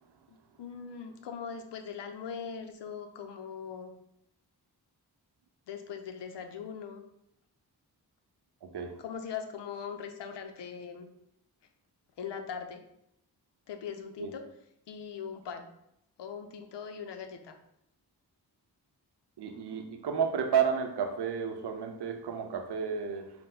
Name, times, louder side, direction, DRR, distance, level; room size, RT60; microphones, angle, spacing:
voice 1, 0.3-3.9 5.7-7.0 9.0-11.1 12.2-12.8 13.7-14.4 14.9-15.7 16.2-17.6, left 7 dB, 90° left, 6 dB, 0.6 m, -40 dB
voice 2, 8.6-8.9 14.2-14.3 19.4-23.3, right 7 dB, 75° right, 6 dB, 0.7 m, -31 dB
5.6 x 2.1 x 3.8 m, 0.78 s
cardioid pair, 50°, 41 cm